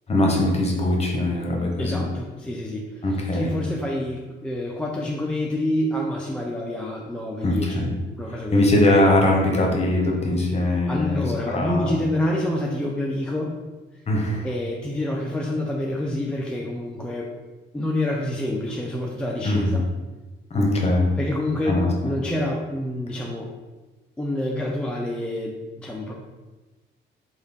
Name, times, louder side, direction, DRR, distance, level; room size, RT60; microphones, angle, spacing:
voice 1, 0.1-2.0 3.0-3.5 7.4-7.9 8.2-11.9 14.1-14.5 19.4-19.8 20.5-21.1 21.6-21.9, left 1 dB, 30° left, 0 dB, 0.9 m, -21 dB
voice 2, 1.8-2.9 3.3-7.8 8.2-8.7 10.9-13.6 14.4-17.3 17.7-19.9 21.2-23.5 24.2-26.1, left 1 dB, 5° left, -2 dB, 0.3 m, -27 dB
3.6 x 2.3 x 3.4 m, 1.2 s
cardioid pair, 90°, 20 cm